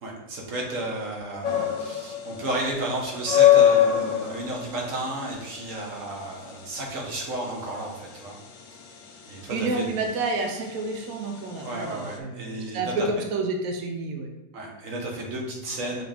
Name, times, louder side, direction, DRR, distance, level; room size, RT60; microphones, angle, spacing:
voice 1, 0.0-8.3 9.3-9.9 11.6-13.1 14.5-16.0, right 2 dB, 45° right, -1 dB, 1.3 m, -32 dB
sound 1, 1.4-12.2, left 10 dB, 85° left, 0.7 m, -25 dB
voice 2, 9.5-14.3, right 3 dB, 80° right, 3 dB, 0.7 m, -29 dB
6.5 x 4.3 x 3.4 m, 0.97 s
omnidirectional pair, 2.3 m